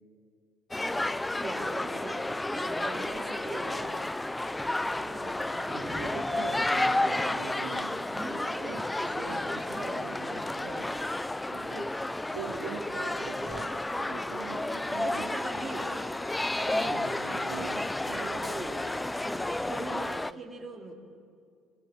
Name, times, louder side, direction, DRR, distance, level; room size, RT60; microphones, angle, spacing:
sound 1, 0.7-20.3, left 2 dB, 10° left, 0.4 m, -31 dB
voice 1, 1.4-2.2 2.5-4.0 4.6-7.1 8.1-8.5 9.7-9.9 15.0-16.0 16.5-17.0 18.1-18.9 19.2-20.9, right 2 dB, 15° right, 0 dB, 3.3 m, -41 dB
voice 2, 5.7-8.1 8.5-10.9 11.5-12.0 12.3-15.3 16.7-18.4, right 7 dB, 90° right, 3 dB, 2.4 m, -42 dB
22.0 x 19.5 x 7.8 m, 2.3 s
supercardioid pair, 90°, 0 cm